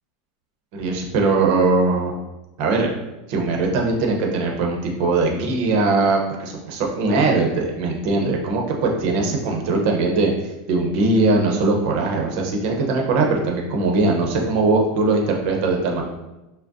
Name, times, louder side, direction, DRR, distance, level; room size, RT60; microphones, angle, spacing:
voice 1, 0.7-2.1 2.6-2.9 3.3-10.3 10.7-16.0, right 3 dB, 55° right, 1 dB, 0.8 m, -20 dB
5.9 x 2.1 x 2.6 m, 0.99 s
supercardioid pair, 155°, 0 cm